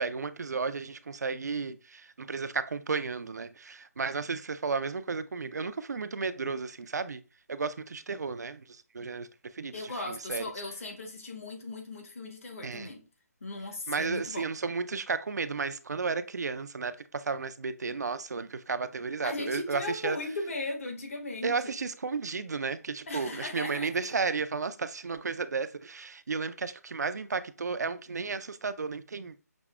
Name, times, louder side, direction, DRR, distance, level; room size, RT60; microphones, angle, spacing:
voice 1, 0.0-7.2 7.5-9.3 9.5-10.4 12.6-12.9 13.9-20.2 21.4-29.3, right 4 dB, 80° right, 0.4 m, -33 dB
voice 2, 9.7-13.0 13.4-14.5 19.2-21.7 23.1-24.0, left 2 dB, 55° left, 1.1 m, -37 dB
5.9 x 2.0 x 2.2 m
figure-of-eight pair, 160°, 9 cm